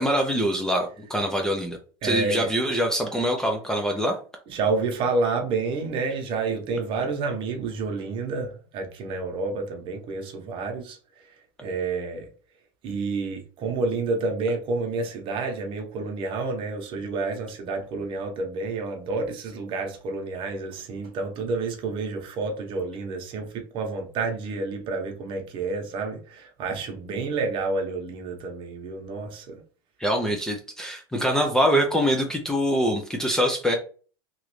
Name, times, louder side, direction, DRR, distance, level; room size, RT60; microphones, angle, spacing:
voice 1, 0.0-1.8 2.0-4.1 30.0-33.8, equal, 5° left, 0.4 m, -24 dB
voice 2, 2.0-2.5 4.5-11.0 11.6-12.3 12.8-29.6, right 3 dB, 45° right, 0.9 m, -29 dB
3.0 x 2.5 x 3.1 m
supercardioid pair, 130°, 13 cm